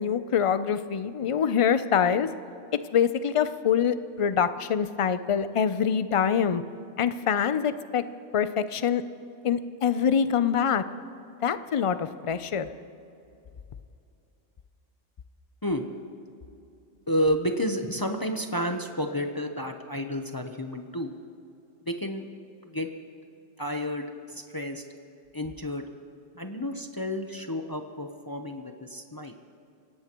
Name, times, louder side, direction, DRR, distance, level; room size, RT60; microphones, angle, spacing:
voice 1, 0.0-2.3 2.9-6.6 7.0-8.0 8.3-9.0 9.4-10.8 11.4-12.7, left 7 dB, 60° left, 12 dB, 0.3 m, -25 dB
voice 2, 17.1-21.1 21.9-22.2 22.6-22.9 23.6-24.8 25.3-25.8 26.3-29.4, equal, 25° left, 5 dB, 0.6 m, -30 dB
26.5 x 17.0 x 3.0 m, 2.7 s
omnidirectional pair, 1.3 m